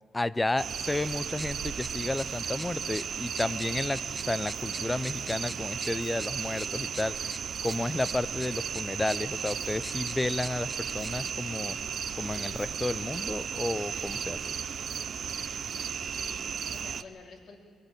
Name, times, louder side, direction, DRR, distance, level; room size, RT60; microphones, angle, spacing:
voice 1, 0.1-7.2 7.6-11.8 12.2-14.5, left 2 dB, 15° left, 18 dB, 0.6 m, -32 dB
sound 1, 0.6-17.0, right 7 dB, 55° right, 0.7 m, -35 dB
sound 2, 1.1-11.3, right 1 dB, 5° right, 1.0 m, -46 dB
voice 2, 15.7-17.6, left 4 dB, 60° left, 1 dB, 3.3 m, -50 dB
22.5 x 19.0 x 7.4 m, 2.1 s
cardioid pair, 90°, 0 cm